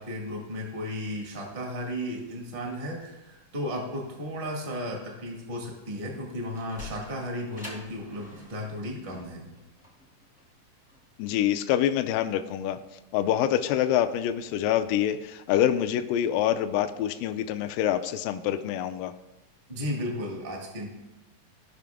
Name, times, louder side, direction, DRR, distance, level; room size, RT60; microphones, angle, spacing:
voice 1, 0.0-9.5 19.7-20.9, equal, 40° right, -1 dB, 0.7 m, -34 dB
Sliding door, 6.5-11.4, left 2 dB, 5° right, 0.7 m, -47 dB
voice 2, 11.2-12.8 13.1-19.1, left 11 dB, 80° left, 7 dB, 2.0 m, -26 dB
16.5 x 5.8 x 3.5 m, 1.0 s
omnidirectional pair, 4.2 m